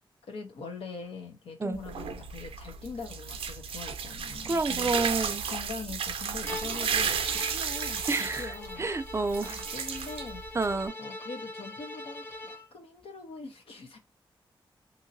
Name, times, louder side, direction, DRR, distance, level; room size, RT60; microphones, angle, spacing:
voice 1, 0.3-5.0 5.5-8.9 9.4-10.4 11.0-14.0, left 4 dB, 85° left, 0.9 m, -42 dB
sound 1, 1.7-10.9, right 6 dB, 90° right, 0.5 m, -33 dB
voice 2, 4.5-5.5 8.1-9.5 10.5-10.9, right 3 dB, 30° right, 0.4 m, -29 dB
Bowed string instrument, 6.4-12.7, left 1 dB, 20° left, 0.9 m, -43 dB
2.8 x 2.8 x 2.6 m
cardioid pair, 70°, 9 cm